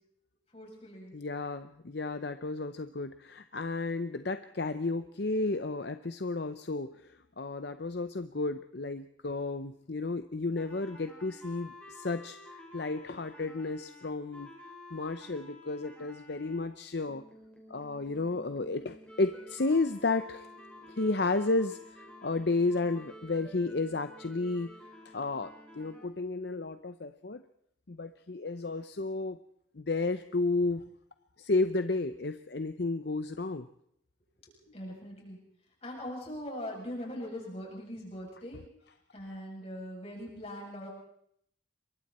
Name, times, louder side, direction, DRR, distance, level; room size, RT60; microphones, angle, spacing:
voice 1, 0.5-1.1 34.5-35.4 35.8-38.6 39.1-40.9, equal, 30° left, -2 dB, 7.7 m, -41 dB
voice 2, 1.1-14.5 14.9-17.3 17.7-20.5 20.9-24.7 25.0-27.4 27.9-29.4 29.7-30.9 31.4-33.7, left 3 dB, 55° left, 10 dB, 0.7 m, -32 dB
sound 1, 10.6-16.6 17.1-26.1, left 1 dB, 5° left, 4.6 m, -51 dB
27.5 x 23.5 x 4.3 m, 0.71 s
head